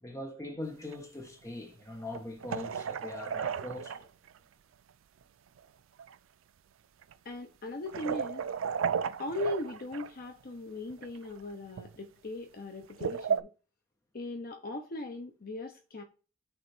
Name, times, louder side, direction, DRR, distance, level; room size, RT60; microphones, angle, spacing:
voice 1, 0.0-4.1, left 2 dB, 15° left, 1.4 m, -41 dB
sound 1, 0.9-1.0 2.1-4.3 5.6-5.7 6.0-6.1 7.0-7.1 7.9-10.1 10.9-11.3 11.7-12.0 12.8-13.4, right 7 dB, 85° right, 0.4 m, -34 dB
voice 2, 7.2-8.5 9.2-13.5 14.1-16.0, left 2 dB, 50° left, 0.8 m, -39 dB
8.0 x 3.1 x 4.3 m
head